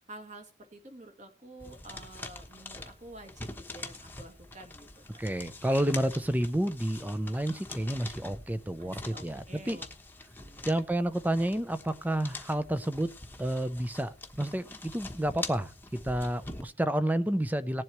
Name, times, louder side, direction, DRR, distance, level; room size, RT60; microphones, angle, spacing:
voice 1, 0.0-5.2 8.8-9.9 10.4-10.8, right 2 dB, 40° right, 3 dB, 2.4 m, -49 dB
sound 1, 1.6-16.6, left 2 dB, 10° left, 1.1 m, -45 dB
voice 2, 5.2-9.8 10.7-13.1 13.4-15.7 16.0-17.8, right 1 dB, 10° right, 13 dB, 0.6 m, -30 dB
19.0 x 7.7 x 3.1 m, 0.38 s
head